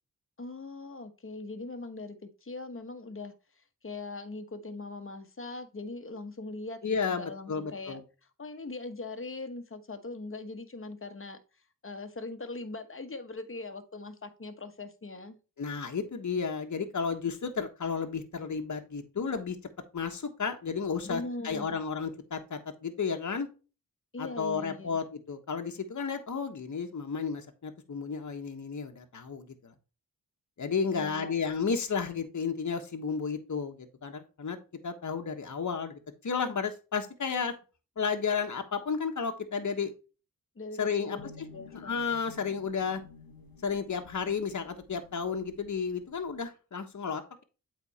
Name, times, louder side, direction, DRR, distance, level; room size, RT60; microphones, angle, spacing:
voice 1, 0.4-3.3 3.8-8.0 8.4-11.4 11.8-15.4 21.0-21.8 24.1-25.0 30.9-31.5 40.5-42.0, left 3 dB, 35° left, 1.3 m, -41 dB
voice 2, 6.8-8.0 15.6-19.6 19.9-23.5 24.2-29.7 30.6-34.6 34.8-37.5 38.0-39.9 40.8-41.5 41.7-43.0 43.6-47.4, left 5 dB, 55° left, 1.3 m, -32 dB
sound 1, 41.2-46.4, left 5 dB, 85° left, 1.0 m, -52 dB
8.2 x 4.2 x 4.1 m
cardioid pair, 50°, 35 cm